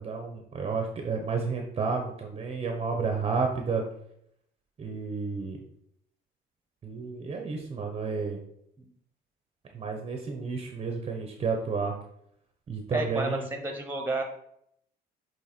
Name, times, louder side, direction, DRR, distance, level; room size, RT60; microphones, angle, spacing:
voice 1, 0.0-3.8 4.8-5.6 6.8-8.4 9.7-11.9 12.7-13.5, right 4 dB, 35° right, 3 dB, 1.0 m, -31 dB
voice 2, 12.9-14.2, right 2 dB, 10° right, 4 dB, 1.3 m, -31 dB
8.4 x 3.4 x 4.5 m, 0.73 s
cardioid pair, 110°, 17 cm